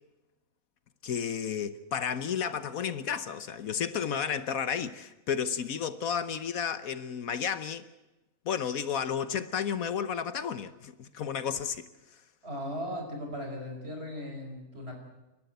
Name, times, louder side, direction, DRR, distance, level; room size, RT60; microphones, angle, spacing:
voice 1, 1.0-7.8 8.5-11.9, left 7 dB, 70° left, 1.3 m, -32 dB
voice 2, 12.4-14.9, equal, 40° right, 5.7 m, -37 dB
29.5 x 12.0 x 9.3 m
omnidirectional pair, 1.6 m